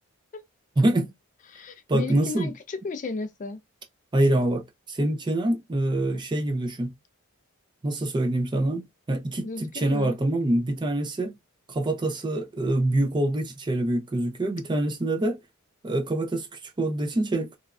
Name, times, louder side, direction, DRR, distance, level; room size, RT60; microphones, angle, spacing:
voice 1, 0.8-1.1 1.9-2.5 4.1-6.9 7.8-11.3 11.7-15.4 15.8-17.5, right 1 dB, 20° right, 0.4 m, -25 dB
voice 2, 1.5-3.6 9.4-10.2, left 3 dB, 40° left, 0.4 m, -34 dB
3.1 x 2.4 x 2.3 m
head